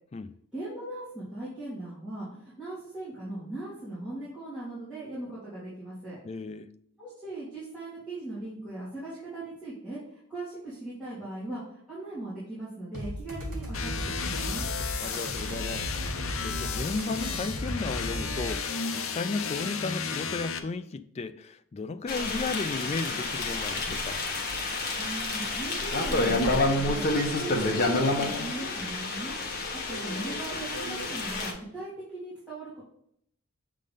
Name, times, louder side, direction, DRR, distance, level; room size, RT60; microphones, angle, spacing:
voice 1, 0.5-6.2 7.0-14.7 24.9-29.4 29.9-32.8, right 2 dB, 5° right, 3.2 m, -39 dB
voice 2, 6.2-6.7 15.0-15.9 16.4-24.2, left 3 dB, 30° left, 0.3 m, -34 dB
sound 1, 12.9-18.6, equal, 45° right, 2.6 m, -36 dB
sound 2, 13.7-20.6, left 5 dB, 65° left, 0.7 m, -33 dB
sound 3, 22.1-31.5, left 2 dB, 45° left, 1.2 m, -29 dB
7.5 x 3.8 x 5.2 m
head